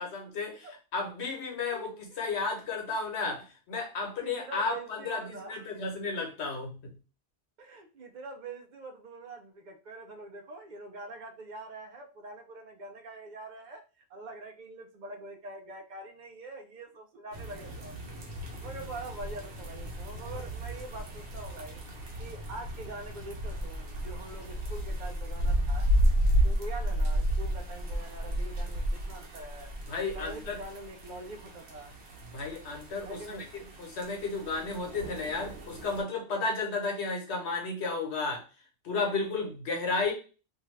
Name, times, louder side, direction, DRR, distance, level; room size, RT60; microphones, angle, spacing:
voice 1, 0.0-6.8 29.9-30.6 32.3-38.4 38.8-40.1, left 3 dB, 80° left, 1 dB, 1.2 m, -33 dB
voice 2, 1.5-2.3 4.2-5.8 7.6-13.8 14.1-18.0 18.6-21.8 22.2-25.9 26.4-29.7 30.1-31.9 33.0-33.5, right 2 dB, 55° right, 5 dB, 0.5 m, -44 dB
sound 1, 17.3-36.0, equal, 85° right, 1.0 m, -32 dB
2.6 x 2.3 x 3.1 m, 0.35 s
omnidirectional pair, 1.1 m